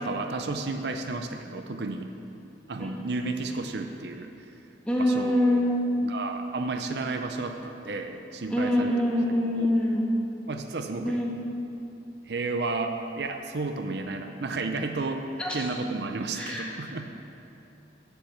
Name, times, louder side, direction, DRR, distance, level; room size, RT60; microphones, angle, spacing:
voice 1, 0.0-2.1 2.7-4.5 5.0-5.6 6.0-8.9 9.6-9.7 10.5-11.2 12.3-15.2 15.5-17.1, right 3 dB, 65° right, 6 dB, 0.6 m, -32 dB
voice 2, 4.9-5.9 8.5-10.1 11.0-11.4 15.4-15.7 16.3-16.7, left 1 dB, 5° left, -4 dB, 1.6 m, -25 dB
9.4 x 8.1 x 7.1 m, 2.8 s
head